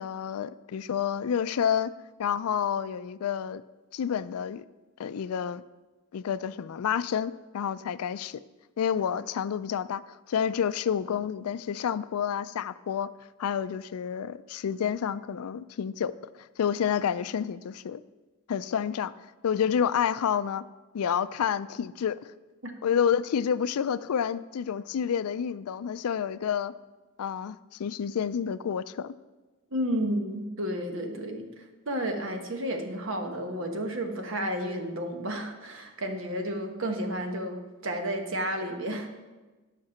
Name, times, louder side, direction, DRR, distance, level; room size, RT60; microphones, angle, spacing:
voice 1, 0.0-1.9 2.2-3.6 3.9-4.7 5.0-5.6 6.1-8.4 8.8-13.1 13.4-16.1 16.4-18.0 18.5-19.1 19.4-20.6 20.9-22.3 22.8-26.7 27.2-29.1, left 8 dB, 80° left, 16 dB, 0.4 m, -29 dB
voice 2, 29.7-31.5 31.8-39.1, equal, 60° right, 4 dB, 1.2 m, -32 dB
10.5 x 5.9 x 5.8 m, 1.2 s
head